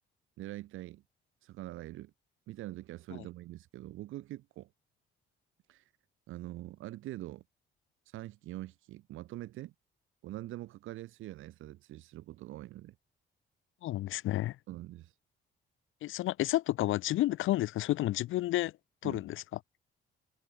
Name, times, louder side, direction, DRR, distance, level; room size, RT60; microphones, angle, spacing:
voice 1, 0.4-1.0 1.4-2.1 2.5-4.7 5.7-5.9 6.3-7.4 8.1-9.7 10.2-12.9 14.7-15.1 19.0-19.2, right 16 dB, 90° right, 3.6 m, -44 dB
voice 2, 13.8-14.6 16.0-18.7 19.0-19.4, left 15 dB, 85° left, 1.2 m, -31 dB
cardioid pair, 90°, 20 cm